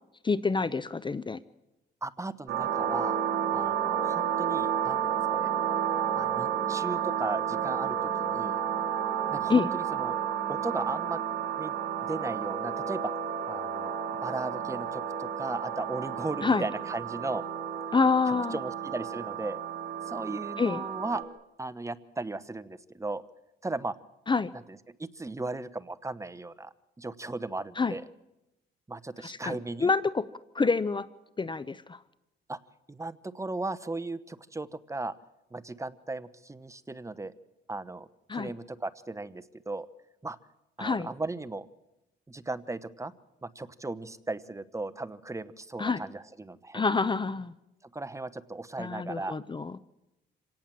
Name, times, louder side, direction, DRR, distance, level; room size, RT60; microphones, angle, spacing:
voice 1, 0.2-1.4 9.5-9.7 16.4-16.7 17.9-18.6 20.6-20.8 24.3-24.5 27.8-28.0 29.2-30.3 30.5-31.1 31.4-32.0 38.3-38.5 40.8-41.1 45.8-46.0 46.7-47.5 48.8-49.8, left 4 dB, 25° left, 17 dB, 0.7 m, -27 dB
voice 2, 2.0-3.2 3.5-5.5 6.1-8.6 9.3-10.2 10.5-11.2 11.6-11.7 12.0-13.1 13.5-13.9 14.2-17.4 18.3-19.6 20.1-21.2 21.6-23.2 23.6-23.9 24.5-24.6 25.0-28.0 28.9-29.9 32.5-32.6 32.9-35.1 35.5-37.3 37.7-39.9 40.2-40.4 40.8-41.7 42.3-43.1 43.4-46.8 47.9-49.4, right 2 dB, 15° right, 12 dB, 1.0 m, -36 dB
sound 1, 2.5-21.2, right 9 dB, 80° right, 3.6 m, -31 dB
26.5 x 18.0 x 7.6 m, 0.93 s
cardioid pair, 90°, 20 cm